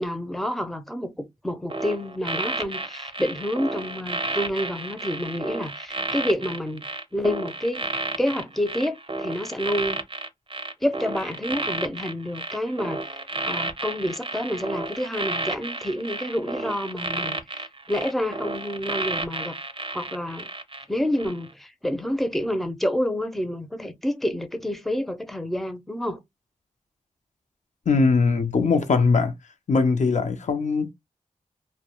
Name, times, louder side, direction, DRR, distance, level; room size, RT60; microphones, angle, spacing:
voice 1, 0.0-7.9 8.2-10.0 10.8-13.0 13.4-17.6 17.9-19.6 19.9-20.5 20.9-26.2, left 1 dB, ahead, 0.5 m, -28 dB
sound 1, 1.7-20.8 21.2-21.5, right 2 dB, 40° right, 0.6 m, -32 dB
voice 2, 27.9-29.3 29.7-30.9, left 4 dB, 65° left, 0.6 m, -21 dB
2.2 x 2.1 x 2.8 m
cardioid pair, 45°, 13 cm